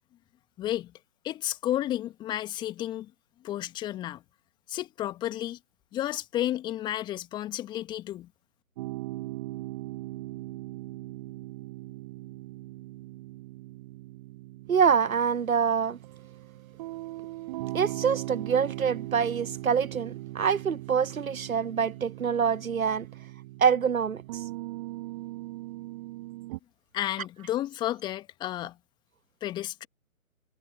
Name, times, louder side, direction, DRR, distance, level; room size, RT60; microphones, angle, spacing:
voice 1, 0.6-0.9 1.2-3.1 3.4-4.2 4.7-5.6 5.9-8.3 26.9-28.8 29.4-29.9, left 13 dB, 10° left, 1.9 m, -32 dB
sound 1, 8.8-26.6, right 18 dB, 25° right, 7.6 m, -40 dB
voice 2, 14.7-16.0 17.7-23.1 23.6-24.4, right 6 dB, 75° right, 0.7 m, -25 dB
figure-of-eight pair, 140°, 42 cm